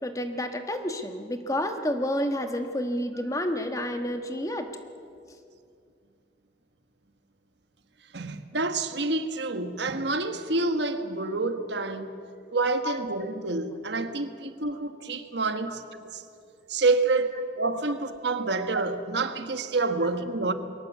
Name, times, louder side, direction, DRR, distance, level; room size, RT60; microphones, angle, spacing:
voice 1, 0.0-4.7 12.8-13.0 13.7-13.8 15.6-15.8, left 1 dB, 20° left, 1.3 m, -30 dB
voice 2, 8.1-12.2 12.5-16.2 16.7-20.5, right 3 dB, 70° right, 1.4 m, -28 dB
22.5 x 18.5 x 8.2 m
head